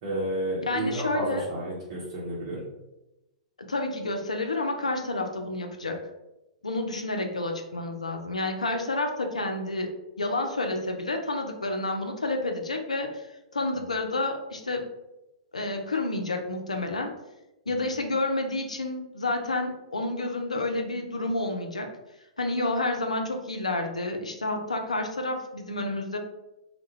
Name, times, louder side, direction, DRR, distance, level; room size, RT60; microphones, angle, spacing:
voice 1, 0.0-2.6, right 1 dB, 45° right, -7 dB, 0.7 m, -31 dB
voice 2, 0.7-1.5 3.7-6.0 6.6-9.9 10.2-13.3 13.5-14.9 15.5-17.1 17.7-21.9 22.4-26.2, left 2 dB, 80° left, 4 dB, 0.4 m, -29 dB
2.2 x 2.0 x 3.0 m, 0.96 s
figure-of-eight pair, 105°, 4 cm